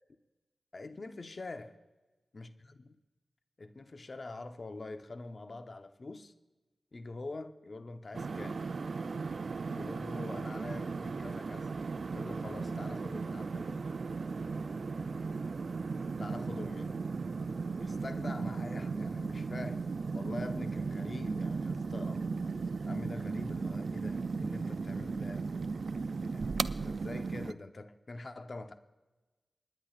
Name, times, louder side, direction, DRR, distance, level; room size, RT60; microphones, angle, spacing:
voice 1, 0.7-1.8 2.3-3.0 3.6-6.3 6.9-8.6 9.7-11.7 12.1-13.9 16.1-17.0 17.8-19.9 20.1-22.2 22.9-25.5 26.2-28.7, left 2 dB, 55° left, 0.9 m, -45 dB
sound 1, 8.1-27.5, right 4 dB, 65° right, 0.3 m, -36 dB
28.5 x 10.0 x 2.5 m
cardioid pair, 45°, 0 cm